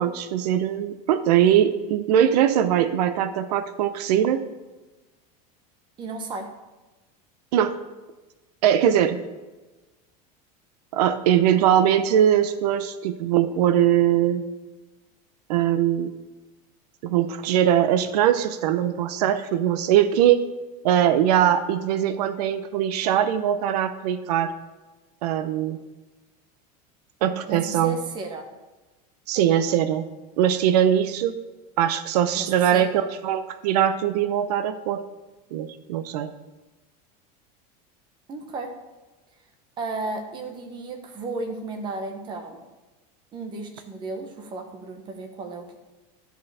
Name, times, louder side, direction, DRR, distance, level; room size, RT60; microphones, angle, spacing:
voice 1, 0.0-4.4 7.5-7.7 8.6-9.2 10.9-14.4 15.5-16.1 17.0-20.5 20.8-24.5 25.2-25.8 27.2-28.0 29.3-30.0 30.4-31.4 31.8-35.0 35.5-36.3, right 10 dB, 85° right, 12 dB, 0.6 m, -21 dB
voice 2, 6.0-6.5 27.5-28.5 32.3-32.9 38.3-38.7 39.8-42.6 43.3-45.8, right 3 dB, 25° right, 5 dB, 0.9 m, -34 dB
11.5 x 5.1 x 4.8 m, 1.2 s
supercardioid pair, 170°, 20 cm